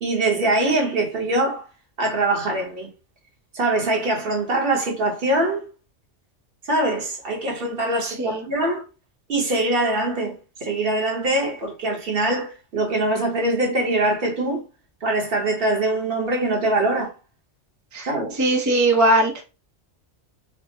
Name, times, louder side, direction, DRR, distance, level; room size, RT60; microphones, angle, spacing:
voice 1, 0.0-1.7 2.0-2.9 3.5-5.6 6.6-8.8 9.3-14.6 15.0-17.1 18.1-18.4, right 2 dB, 55° right, 1.1 m, -23 dB
voice 2, 8.0-8.4 17.9-18.1 18.4-19.4, right 1 dB, 25° right, 0.4 m, -20 dB
3.5 x 2.0 x 3.8 m
omnidirectional pair, 1.2 m